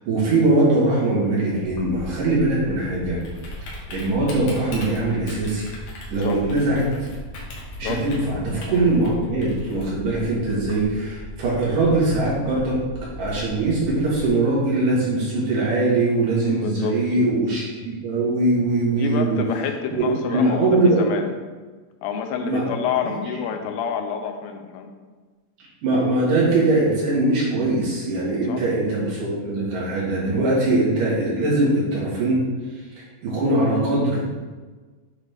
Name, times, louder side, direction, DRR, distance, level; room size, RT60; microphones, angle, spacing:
voice 1, 0.1-3.2 3.9-5.7 6.1-6.8 7.8-12.8 13.2-17.6 18.0-19.4 19.9-21.0 22.4-22.6 23.0-23.1 25.8-32.4 33.2-34.2, right 2 dB, 65° right, -6 dB, 3.3 m, -21 dB
Typing, 1.6-14.3, left 1 dB, 60° left, 2.2 m, -37 dB
voice 2, 16.5-17.0 18.9-21.3 22.0-24.9 28.4-28.6, left 7 dB, 80° left, 5 dB, 2.4 m, -28 dB
8.3 x 5.0 x 3.5 m, 1.3 s
omnidirectional pair, 4.3 m